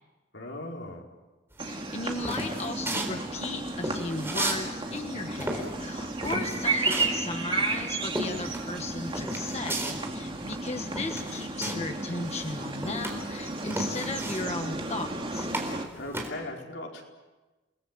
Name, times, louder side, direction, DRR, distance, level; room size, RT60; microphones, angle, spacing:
voice 1, 0.3-1.1 16.0-17.0, left 1 dB, 75° left, 0 dB, 4.8 m, -38 dB
sound 1, 1.6-4.6 4.9-12.0 12.2-16.3, right 1 dB, 15° right, 4.0 m, -34 dB
sound 2, 1.6-15.9, right 3 dB, 30° right, 2.4 m, -34 dB
voice 2, 1.7-9.8 10.1-15.5, left 3 dB, 35° left, 5 dB, 1.4 m, -36 dB
sound 3, 2.2-10.5, equal, 10° left, 2.1 m, -43 dB
29.5 x 20.5 x 7.6 m, 1.2 s
head